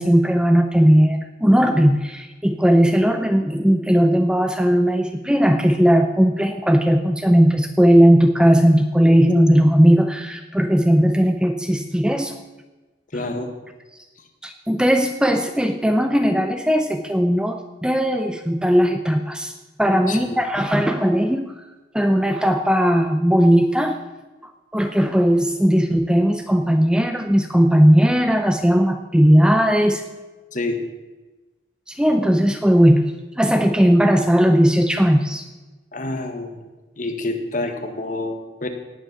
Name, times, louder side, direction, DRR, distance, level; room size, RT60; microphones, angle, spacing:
voice 1, 0.0-12.4 14.4-19.5 19.8-21.6 21.9-24.0 24.7-30.0 31.9-35.4, equal, 5° right, 6 dB, 0.6 m, -17 dB
voice 2, 13.1-13.5 20.1-20.4 30.5-30.8 35.9-36.6 37.0-38.7, left 2 dB, 45° left, 6 dB, 1.6 m, -27 dB
18.0 x 7.6 x 6.8 m, 1.2 s
head